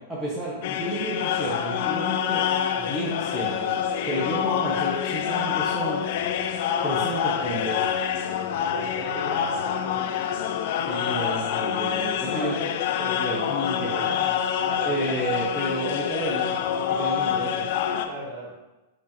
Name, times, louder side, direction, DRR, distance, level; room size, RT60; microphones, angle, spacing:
voice 1, 0.1-2.4 2.8-3.8 4.1-6.0 6.8-7.9 10.9-12.7 13.0-14.0 14.8-16.5 16.9-17.6, right 1 dB, 10° right, -7 dB, 0.7 m, -31 dB
sound 1, 0.6-18.1, left 9 dB, 50° left, 0.3 m, -26 dB
voice 2, 8.6-10.3 12.2-12.5 13.8-15.0 18.0-18.5, right 2 dB, 35° right, -5 dB, 1.4 m, -37 dB
5.2 x 2.5 x 2.8 m, 1.0 s
figure-of-eight pair, 100°, 0 cm